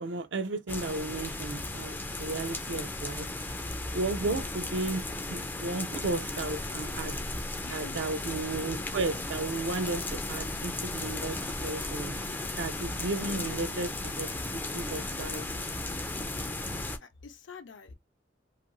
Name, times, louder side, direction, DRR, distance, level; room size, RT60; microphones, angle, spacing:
voice 1, 0.0-3.3 3.9-7.2 7.7-11.4 11.6-12.2 12.6-14.3 14.5-15.4, right 2 dB, 70° right, 0.5 m, -34 dB
sound 1, 0.7-17.0, left 2 dB, 10° left, 0.3 m, -35 dB
voice 2, 2.6-3.0 4.2-4.5 7.6-8.3 13.2-13.6 17.0-17.9, left 5 dB, 75° left, 0.6 m, -47 dB
2.6 x 2.4 x 2.9 m
head